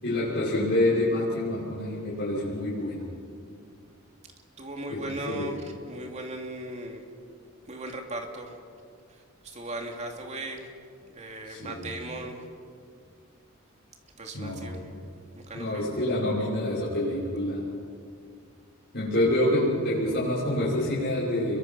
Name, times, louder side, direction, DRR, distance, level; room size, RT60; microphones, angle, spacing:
voice 1, 0.0-3.0 4.9-5.5 11.4-11.9 14.3-14.9 15.5-17.6 18.9-21.6, left 1 dB, 50° left, -10 dB, 6.5 m, -27 dB
voice 2, 4.6-7.0 7.7-8.6 9.1-10.7 11.0-12.5 14.2-14.8 15.4-15.8, right 1 dB, 30° right, 2 dB, 2.7 m, -38 dB
29.5 x 23.0 x 5.8 m, 2.3 s
head